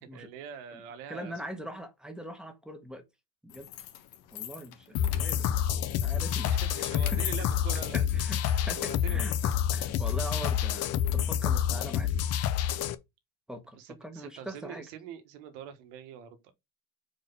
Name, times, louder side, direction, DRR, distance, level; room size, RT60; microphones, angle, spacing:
voice 1, 0.0-1.3 5.9-6.1 6.4-8.0 8.8-9.3 13.8-16.5, right 8 dB, 90° right, 1.5 m, -44 dB
voice 2, 1.1-3.0 3.4-3.7 4.3-5.6 6.0-6.5 7.1-7.5 7.9-12.1 13.5-14.9, right 1 dB, ahead, 1.2 m, -42 dB
sound 1, 3.5-12.4, left 12 dB, 80° left, 1.2 m, -45 dB
sound 2, 4.9-12.9, left 9 dB, 45° left, 0.7 m, -28 dB
4.6 x 4.0 x 5.6 m
cardioid pair, 140°, 35 cm